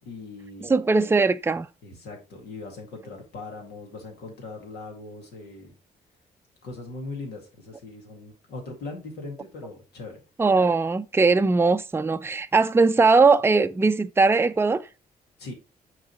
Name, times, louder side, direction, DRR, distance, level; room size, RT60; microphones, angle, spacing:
voice 1, 0.1-0.7 1.8-5.7 6.6-10.2 15.4-15.5, left 3 dB, 80° left, 2.1 m, -40 dB
voice 2, 0.6-1.7 10.4-14.9, right 4 dB, 15° right, 0.5 m, -20 dB
6.2 x 4.0 x 4.3 m
supercardioid pair, 55°, 17 cm